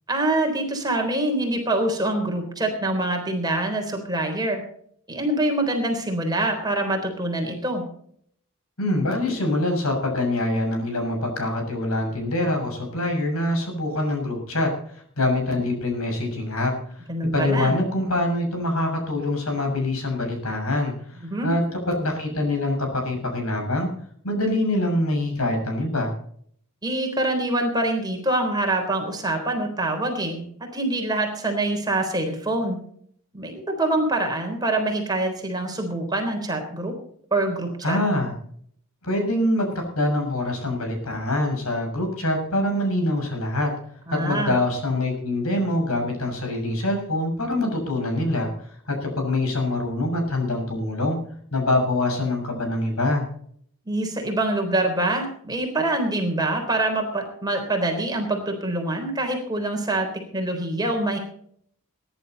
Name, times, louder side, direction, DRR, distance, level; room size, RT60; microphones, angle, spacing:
voice 1, 0.1-4.6 5.1-7.8 17.1-17.7 21.2-21.5 26.8-30.4 30.7-32.8 33.3-36.9 37.3-38.0 44.1-44.6 53.9-61.2, right 2 dB, 20° right, 3 dB, 3.8 m, -25 dB
voice 2, 8.8-16.7 17.3-20.9 21.4-23.9 24.2-26.1 37.8-38.3 39.0-43.7 44.1-48.5 48.9-51.2 51.5-53.2, left 1 dB, 80° left, 2 dB, 6.7 m, -24 dB
21.5 x 11.5 x 4.1 m, 0.63 s
head